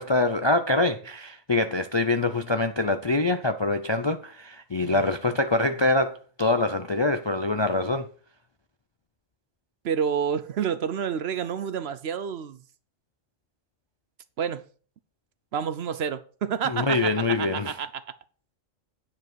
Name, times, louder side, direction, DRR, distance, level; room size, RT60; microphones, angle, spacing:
voice 1, 0.0-8.0 16.6-17.7, left 2 dB, 40° left, 0.4 m, -24 dB
voice 2, 4.8-5.1 9.8-12.6 14.4-14.7 15.5-18.0, right 7 dB, 60° right, 0.8 m, -29 dB
9.5 x 5.3 x 6.2 m
omnidirectional pair, 1.3 m